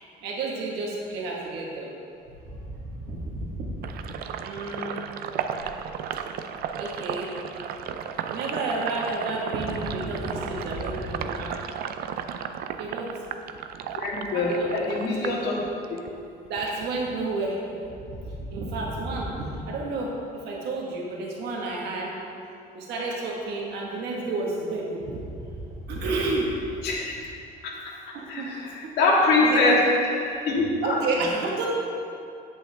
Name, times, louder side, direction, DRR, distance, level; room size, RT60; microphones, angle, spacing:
voice 1, 0.2-1.9 2.5-3.9 4.4-5.0 6.7-7.3 8.3-11.5 12.8-13.1 14.2-15.4 16.5-17.6 18.0-22.2 22.7-26.5 28.1-28.9 29.4-29.8 30.8-31.7, right 2 dB, 80° right, -2 dB, 1.4 m, -31 dB
Sink (filling or washing), 3.8-16.1 16.4-17.9, right 8 dB, 65° right, 0.5 m, -34 dB
voice 2, 13.9-15.6 26.8-27.0 27.6-27.7 28.3-31.0, left 2 dB, 75° left, -3 dB, 1.8 m, -23 dB
8.5 x 7.7 x 3.4 m, 2.6 s
cardioid pair, 110°, 17 cm